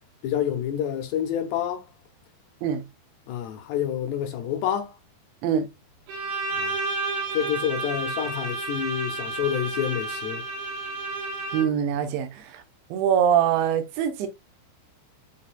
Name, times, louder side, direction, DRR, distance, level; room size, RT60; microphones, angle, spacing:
voice 1, 0.2-1.8 3.3-4.9 6.5-6.8 7.3-10.4, left 10 dB, 75° left, 3.0 m, -28 dB
Bowed string instrument, 6.1-11.9, right 2 dB, 60° right, 3.5 m, -31 dB
voice 2, 11.5-12.6 12.9-14.3, right 9 dB, 80° right, 3.3 m, -23 dB
11.0 x 4.1 x 2.3 m
omnidirectional pair, 5.2 m